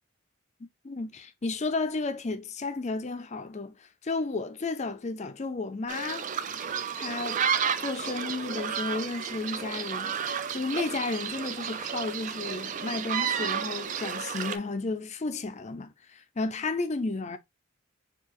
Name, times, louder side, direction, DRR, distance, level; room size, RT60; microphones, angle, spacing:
voice 1, 0.8-3.8 4.0-6.3 7.0-7.4 7.8-10.2 10.5-17.4, left 3 dB, 30° left, 0.5 m, -33 dB
sound 1, 5.9-14.6, right 7 dB, 35° right, 0.3 m, -32 dB
4.5 x 2.5 x 3.0 m
head